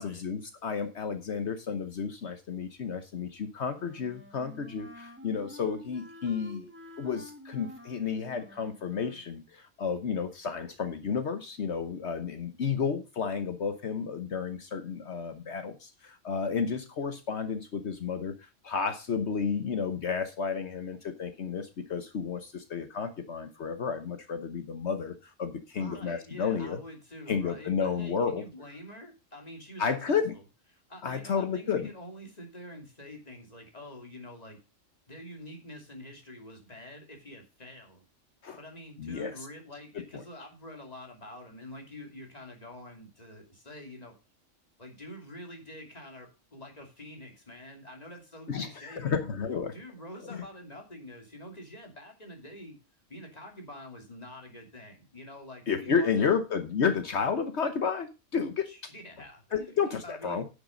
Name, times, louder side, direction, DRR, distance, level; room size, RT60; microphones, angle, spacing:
voice 1, 0.0-6.7 7.0-18.3 18.6-26.8 27.3-28.4 29.8-30.3 31.0-31.9 38.4-38.6 39.0-39.3 39.9-40.0 48.5-49.7 50.3-50.5 55.7-58.9 59.5-60.5, left 6 dB, 65° left, 9 dB, 1.2 m, -31 dB
Wind instrument woodwind instrument, 3.6-9.3, left 1 dB, 10° right, 1.4 m, -49 dB
voice 2, 25.8-30.4 30.7-34.6 35.1-38.0 38.6-44.2 44.8-49.2 49.7-52.8 53.1-56.3 58.6-60.4, left 1 dB, 30° left, 2 dB, 2.8 m, -46 dB
10.0 x 6.9 x 5.2 m, 0.29 s
omnidirectional pair, 1.3 m